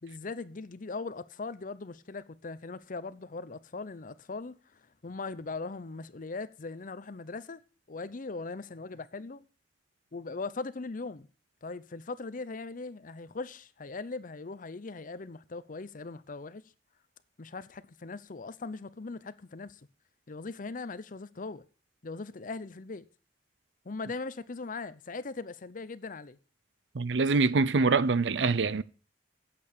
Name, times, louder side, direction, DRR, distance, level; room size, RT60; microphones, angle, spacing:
voice 1, 0.0-7.6 7.9-9.4 10.1-11.3 11.6-16.6 17.4-19.8 20.3-21.6 22.0-23.0 23.8-26.4, left 3 dB, 50° left, 0.7 m, -40 dB
voice 2, 26.9-28.8, right 4 dB, 85° right, 0.6 m, -25 dB
8.6 x 8.4 x 6.8 m
head